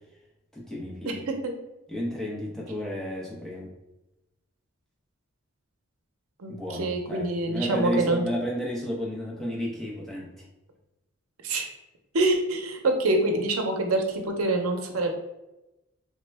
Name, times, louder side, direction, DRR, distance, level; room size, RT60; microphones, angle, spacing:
voice 1, 0.5-1.2 1.9-3.7 6.5-10.5, equal, ahead, -4 dB, 0.6 m, -32 dB
voice 2, 6.8-8.2 11.4-11.7 12.1-15.1, right 2 dB, 85° right, 4 dB, 0.6 m, -25 dB
3.4 x 2.1 x 3.3 m, 0.96 s
head